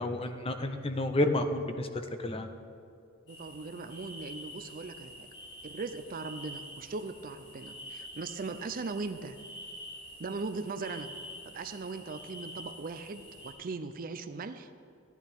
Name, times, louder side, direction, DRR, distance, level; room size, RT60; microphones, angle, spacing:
voice 1, 0.0-1.9 2.2-2.5, left 1 dB, 25° left, 7 dB, 0.7 m, -30 dB
sound 1, 3.3-13.5, equal, 55° left, 2.5 m, -47 dB
voice 2, 3.3-5.3 5.6-9.4 10.2-11.1 11.5-14.7, right 3 dB, 40° right, 10 dB, 0.5 m, -39 dB
14.5 x 11.0 x 3.6 m, 2.5 s
head